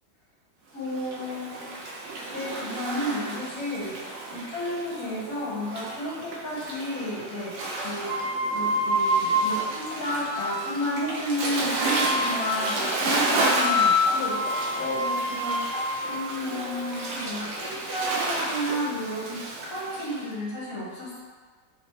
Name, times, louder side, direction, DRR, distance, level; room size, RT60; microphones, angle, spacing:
voice 1, 0.7-1.6 2.3-7.5 7.8-8.1 8.5-14.3 14.7-15.8 16.0-19.4 19.7-21.2, equal, 55° left, -6 dB, 1.2 m, -32 dB
Waves surf, 0.8-20.2, right 2 dB, 75° right, 1.1 m, -32 dB
sound 1, 8.1-10.9 11.7-12.8 13.4-17.4, left 1 dB, 50° right, 0.8 m, -27 dB
3.3 x 2.9 x 2.8 m, 1.5 s
omnidirectional pair, 2.0 m